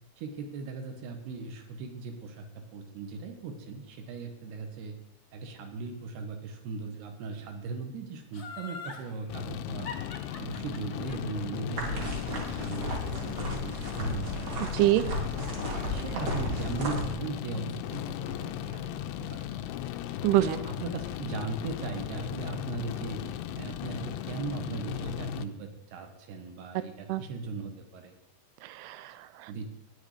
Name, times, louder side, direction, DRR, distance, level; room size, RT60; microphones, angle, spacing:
voice 1, 0.2-4.9 5.3-9.9 10.4-14.5 15.5-18.0 18.3-19.7 20.4-23.2 23.6-28.1 29.5-29.7, right 4 dB, 65° right, 6 dB, 3.2 m, -38 dB
Laughter, 8.3-9.0 9.8-12.9 13.3-13.4, left 5 dB, 60° left, 0.9 m, -42 dB
sound 1, 9.3-25.5, left 11 dB, 80° left, 2.5 m, -37 dB
sound 2, 11.8-17.1, equal, 45° right, 3.1 m, -34 dB
voice 2, 14.6-15.0 20.2-20.6 27.1-27.3 28.6-29.5, right 14 dB, 90° right, 13 dB, 2.3 m, -26 dB
13.0 x 10.0 x 5.1 m, 0.83 s
omnidirectional pair, 5.4 m